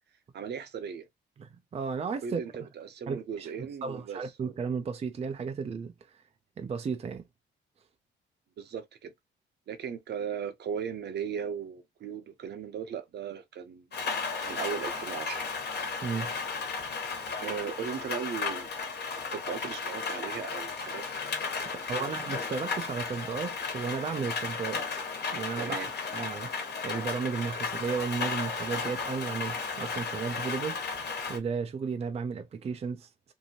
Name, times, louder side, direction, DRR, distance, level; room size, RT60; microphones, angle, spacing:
voice 1, 0.3-1.1 2.2-4.2 8.6-9.1 9.7-13.8 14.4-15.5 17.4-18.7 19.3-21.0 21.6-21.7 22.0-22.1 25.6-25.9, right 7 dB, 60° right, 0.7 m, -37 dB
voice 2, 1.4-2.7 3.1-3.5 3.8-6.2 6.6-7.2 16.0-16.3 21.9-24.8 25.3-25.8 26.1-26.5 26.8-30.8 31.3-33.1, right 5 dB, 30° right, 0.4 m, -34 dB
Rain, 13.9-31.4, left 4 dB, 55° left, 1.3 m, -34 dB
2.7 x 2.6 x 2.7 m
cardioid pair, 90°, 20 cm